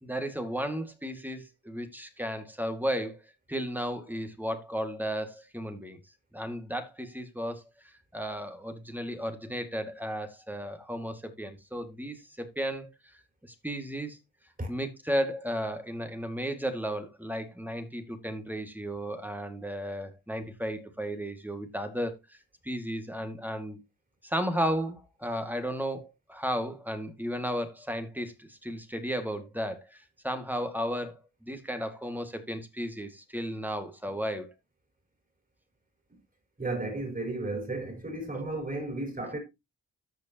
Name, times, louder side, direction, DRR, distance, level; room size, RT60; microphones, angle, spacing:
voice 1, 0.0-3.2 3.5-6.0 6.3-7.6 8.1-12.9 13.4-14.2 14.7-22.2 22.6-23.8 24.2-34.5, equal, 5° right, 2.0 m, -34 dB
voice 2, 36.6-39.4, right 2 dB, 20° right, 4.7 m, -33 dB
14.0 x 5.2 x 2.9 m
cardioid pair, 60°, 39 cm